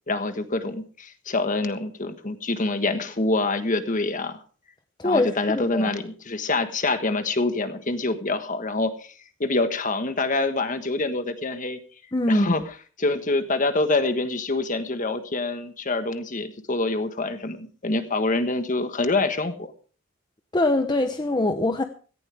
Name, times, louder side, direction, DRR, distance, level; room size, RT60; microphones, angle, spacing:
voice 1, 0.1-4.4 5.0-9.1 9.4-11.8 12.3-12.6 13.0-19.7, left 2 dB, 40° left, 9 dB, 1.4 m, -26 dB
voice 2, 5.0-5.9 12.1-12.5 20.5-21.8, left 1 dB, 20° left, 7 dB, 0.8 m, -23 dB
17.0 x 15.0 x 3.5 m, 0.40 s
head